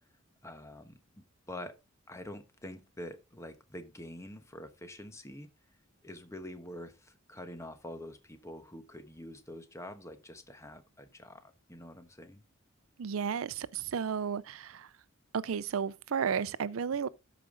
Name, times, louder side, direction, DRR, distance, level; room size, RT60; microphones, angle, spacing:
voice 1, 0.4-1.8 2.1-5.5 6.0-12.4, left 1 dB, 15° left, 1.0 m, -46 dB
voice 2, 13.0-14.9 15.3-17.1, right 7 dB, 85° right, 0.5 m, -33 dB
12.5 x 5.1 x 3.8 m
head